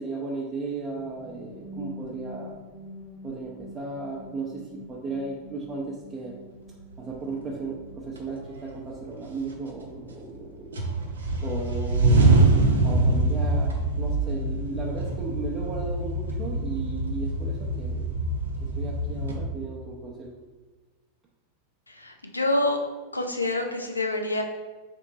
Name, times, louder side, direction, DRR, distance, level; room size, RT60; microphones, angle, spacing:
voice 1, 0.0-2.6 3.2-6.3 7.0-10.8 11.4-12.3 12.8-18.2 18.6-20.3, right 3 dB, 25° right, -4 dB, 0.6 m, -35 dB
sound 1, 0.7-8.5, equal, 45° left, 1.0 m, -45 dB
sound 2, 7.5-7.6 8.2-8.9 9.3-10.4 10.7-19.4, right 2 dB, 75° right, 0.5 m, -24 dB
voice 2, 21.9-22.8 23.1-24.4, left 2 dB, 90° left, 4 dB, 0.5 m, -27 dB
3.3 x 2.9 x 3.9 m, 1.3 s
figure-of-eight pair, 90°, 0 cm